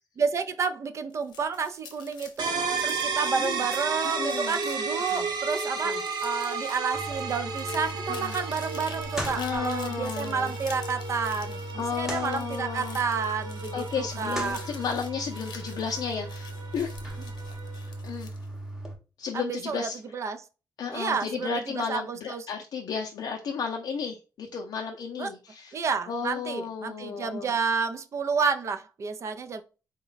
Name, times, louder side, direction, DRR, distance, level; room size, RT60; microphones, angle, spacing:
voice 1, 0.2-5.9 6.2-14.6 19.3-20.4 20.9-22.4 25.2-25.3 25.7-29.6, right 5 dB, 40° right, 0.4 m, -30 dB
sound 1, 1.1-18.5, left 6 dB, 90° left, 0.9 m, -48 dB
sound 2, 2.4-18.0, right 4 dB, 75° right, 0.7 m, -34 dB
voice 2, 3.3-3.7 4.2-4.6 5.1-5.3 5.8-6.0 8.1-8.3 9.3-10.5 11.8-13.0 13.7-16.9 18.0-18.3 19.2-19.9 20.8-25.8 26.1-27.5, left 6 dB, 65° left, 0.5 m, -33 dB
sound 3, 6.9-18.9, right 1 dB, 5° right, 0.8 m, -38 dB
3.9 x 2.1 x 3.9 m
wide cardioid pair, 165°, 7 cm